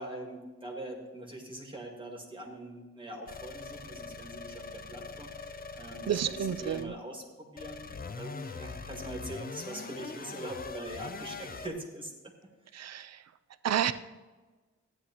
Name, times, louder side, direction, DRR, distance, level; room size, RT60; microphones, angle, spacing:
voice 1, 0.0-12.3, right 1 dB, 15° right, 0 dB, 1.9 m, -42 dB
sound 1, 3.3-6.9 7.6-11.7, left 4 dB, 30° left, 0.5 m, -42 dB
voice 2, 6.1-6.9 12.7-13.2 13.6-13.9, right 9 dB, 60° right, 12 dB, 0.5 m, -30 dB
15.0 x 9.9 x 2.9 m, 1.3 s
wide cardioid pair, 150°, 29 cm